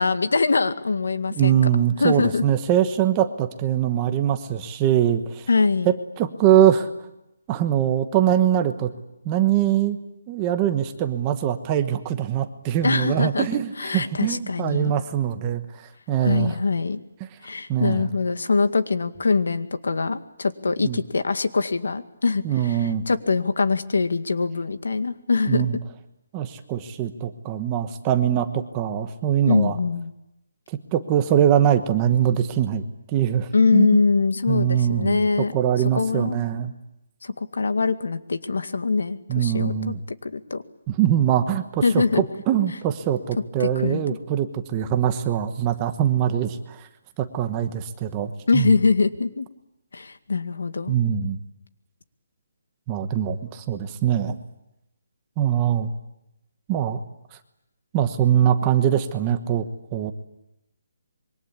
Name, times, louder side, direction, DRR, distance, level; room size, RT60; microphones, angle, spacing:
voice 1, 0.0-1.6 2.0-2.4 5.5-5.9 12.8-15.0 16.2-17.0 17.4-25.6 29.5-30.1 33.5-35.5 35.9-36.4 37.2-39.9 40.2-40.6 41.8-42.2 43.6-44.0 48.5-49.5 49.9-50.9, left 4 dB, 80° left, 10 dB, 2.0 m, -23 dB
voice 2, 1.4-5.5 5.8-6.9 7.5-8.9 9.2-10.0 10.3-15.6 16.1-16.5 17.7-18.1 20.8-21.0 22.4-23.0 25.5-25.8 26.3-29.8 30.7-32.8 33.1-33.9 34.5-35.3 35.5-36.7 39.3-40.0 40.9-46.9 47.2-48.7 50.9-51.4 52.9-54.4 55.4-55.9 56.7-57.0 57.9-59.6 59.9-60.1, right 10 dB, 15° right, 8 dB, 1.1 m, -22 dB
26.0 x 23.5 x 8.7 m, 0.86 s
hypercardioid pair, 175°, 0 cm